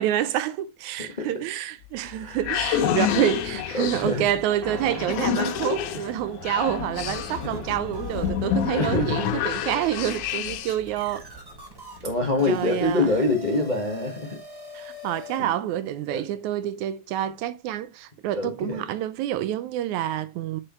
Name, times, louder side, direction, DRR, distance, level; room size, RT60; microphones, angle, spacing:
voice 1, 0.0-11.3 12.5-13.1 14.7-20.6, right 12 dB, 80° right, 2.0 m, -28 dB
sound 1, 1.8-10.9, left 10 dB, 90° left, 2.3 m, -29 dB
voice 2, 3.7-4.3 4.8-5.1 7.1-7.2 7.4-7.7 8.7-9.2 10.1-10.5 12.0-14.4 15.4-15.5 16.1-16.2 18.3-18.8, left 2 dB, 30° left, 0.7 m, -26 dB
sound 2, 4.6-5.7 6.3-6.4 6.9-15.4, left 1 dB, 10° right, 1.3 m, -44 dB
Piano, 4.6-12.9, right 2 dB, 35° right, 2.2 m, -45 dB
7.6 x 6.1 x 3.1 m
omnidirectional pair, 3.4 m